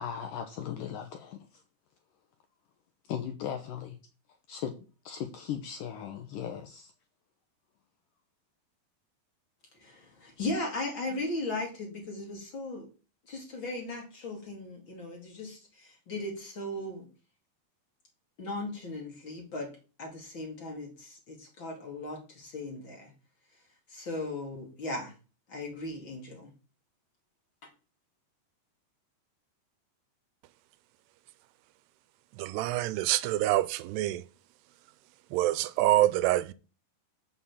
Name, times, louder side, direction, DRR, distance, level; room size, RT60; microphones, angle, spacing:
voice 1, 0.0-1.6 3.0-4.0 4.5-6.9, left 9 dB, 75° left, 2.0 m, -38 dB
voice 2, 9.8-12.9 13.3-17.1 18.4-19.7 20.0-23.1 23.9-25.1 25.5-26.5, left 2 dB, 35° left, 2.5 m, -37 dB
voice 3, 32.3-34.3 35.3-36.5, right 15 dB, 85° right, 2.6 m, -26 dB
6.7 x 5.8 x 7.2 m
omnidirectional pair, 4.6 m